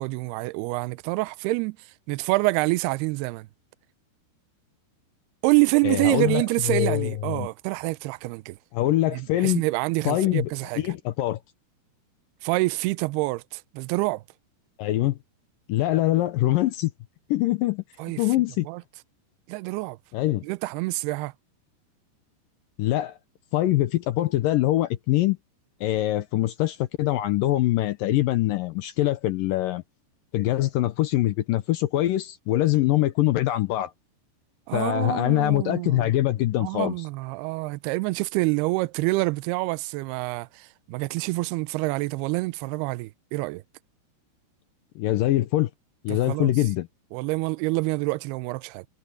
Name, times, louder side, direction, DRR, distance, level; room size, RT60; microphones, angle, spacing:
voice 1, 0.0-3.5 5.4-8.6 9.1-10.9 12.4-14.2 18.0-18.2 18.7-18.8 19.5-20.0 20.4-21.3 34.7-36.1 36.6-43.6 46.1-46.5 47.1-48.9, right 23 dB, 80° right, 2.4 m, -27 dB
voice 2, 5.8-7.5 8.7-9.6 10.1-10.5 10.8-11.4 14.8-15.2 15.7-16.9 17.3-17.8 18.2-18.7 20.1-20.5 22.8-23.2 23.5-25.4 25.8-29.8 30.3-33.9 34.7-36.9 45.0-45.7 46.0-46.9, left 15 dB, 80° left, 2.0 m, -23 dB
omnidirectional pair, 5.0 m